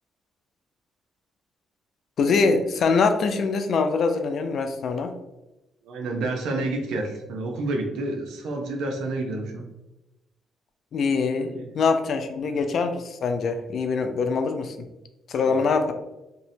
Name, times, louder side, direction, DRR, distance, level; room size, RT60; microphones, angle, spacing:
voice 1, 2.2-5.1 10.9-14.9 15.3-15.9, left 4 dB, 60° left, 7 dB, 0.3 m, -23 dB
voice 2, 5.8-9.6 11.4-11.6 12.5-12.6 15.5-15.6, right 2 dB, 85° right, 2 dB, 0.5 m, -29 dB
2.7 x 2.0 x 2.6 m, 0.97 s
cardioid pair, 90°, 0 cm